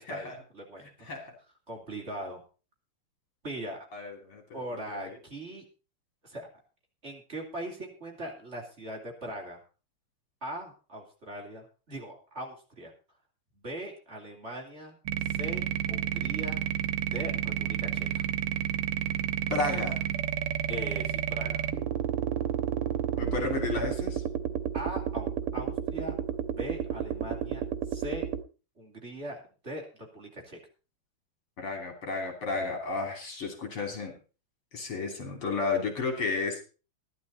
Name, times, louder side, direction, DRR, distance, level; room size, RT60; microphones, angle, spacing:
voice 1, 0.0-1.1 1.7-2.4 3.4-3.9 4.5-5.6 6.2-6.5 7.0-9.6 10.4-12.9 13.6-15.0 15.3-16.6 17.1-18.2 20.7-21.7 24.7-26.1 26.5-27.6 27.9-28.3 28.8-30.6, right 1 dB, 30° right, 0 dB, 3.1 m, -40 dB
voice 2, 0.8-1.3 3.9-5.2 19.5-20.0 23.2-24.2 31.6-34.2 34.7-36.6, left 4 dB, 75° left, 3 dB, 4.1 m, -33 dB
sound 1, 15.1-28.4, right 10 dB, 90° right, 1.9 m, -31 dB
14.0 x 11.5 x 4.1 m, 0.34 s
omnidirectional pair, 2.4 m